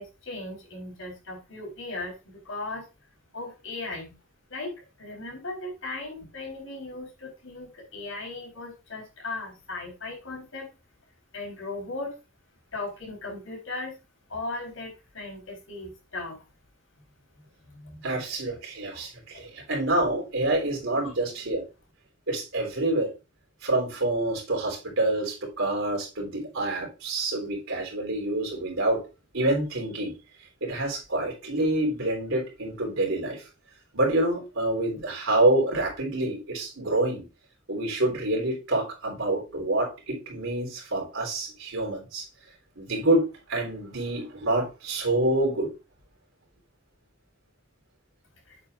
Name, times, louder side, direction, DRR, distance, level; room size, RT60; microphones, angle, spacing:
voice 1, 0.0-2.8 3.3-4.1 4.5-4.7 5.0-10.7 11.3-12.1 12.7-13.9 14.3-16.4 18.9-19.0 19.3-19.4 21.0-21.1 48.5-48.6, left 2 dB, 80° left, 0 dB, 4.4 m, -37 dB
voice 2, 17.7-21.6 22.3-23.1 23.6-29.0 29.3-30.1 30.6-33.4 33.9-37.2 37.7-42.3 42.8-45.7, right 2 dB, 90° right, 0 dB, 3.5 m, -27 dB
8.3 x 7.3 x 2.5 m, 0.29 s
head